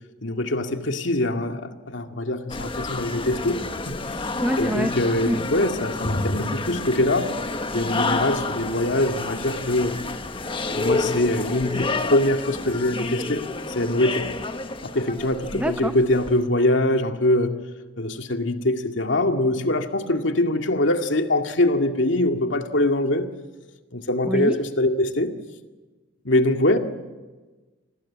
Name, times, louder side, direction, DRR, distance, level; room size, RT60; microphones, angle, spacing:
voice 1, 0.2-4.0 4.6-7.3 7.7-10.0 10.7-14.3 14.8-17.6 18.0-23.3 23.9-25.3 26.2-26.8, left 1 dB, 80° left, 5 dB, 2.2 m, -23 dB
sound 1, 2.5-16.3, left 3 dB, 30° left, 1.3 m, -29 dB
voice 2, 4.4-4.9 5.2-5.4 15.5-15.9 24.2-24.6, equal, 10° right, 8 dB, 0.8 m, -25 dB
29.5 x 20.5 x 8.7 m, 1.3 s
head